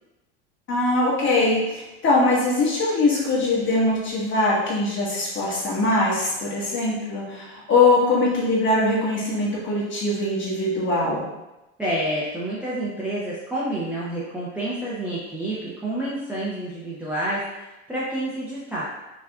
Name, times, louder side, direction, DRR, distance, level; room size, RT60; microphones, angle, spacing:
voice 1, 0.7-11.3, left 2 dB, 35° left, -5 dB, 1.3 m, -22 dB
voice 2, 11.8-18.8, right 1 dB, 5° right, -9 dB, 0.6 m, -29 dB
4.8 x 2.4 x 2.3 m, 1.0 s
supercardioid pair, 110°, 35 cm